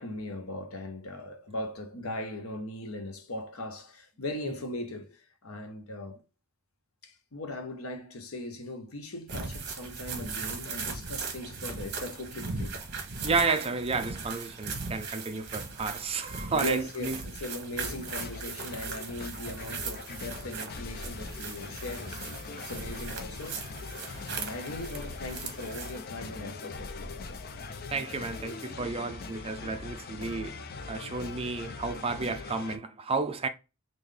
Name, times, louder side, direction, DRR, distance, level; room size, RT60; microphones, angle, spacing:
voice 1, 0.0-6.2 7.0-12.8 16.5-22.3 22.6-23.9 24.3-27.4, left 1 dB, 75° left, 0.9 m, -39 dB
sound 1, 9.3-26.0, right 4 dB, 55° right, 1.1 m, -39 dB
voice 2, 13.2-17.2 27.9-33.5, right 4 dB, 25° right, 0.5 m, -32 dB
sound 2, 17.7-32.8, left 4 dB, 45° left, 0.5 m, -41 dB
3.8 x 2.6 x 3.3 m
head